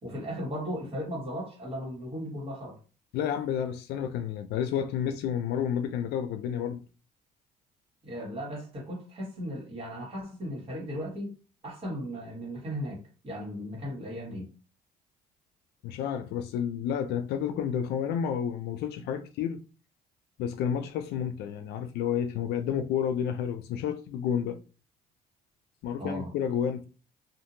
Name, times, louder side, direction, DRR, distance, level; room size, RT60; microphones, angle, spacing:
voice 1, 0.0-2.8 8.0-11.3 11.6-14.5 26.0-26.3, equal, 35° right, 1.5 m, -36 dB
voice 2, 3.1-6.8 15.8-19.6 20.4-24.6 25.8-26.9, left 8 dB, 80° left, 0.4 m, -30 dB
2.7 x 2.5 x 2.6 m
cardioid pair, 110°, 17 cm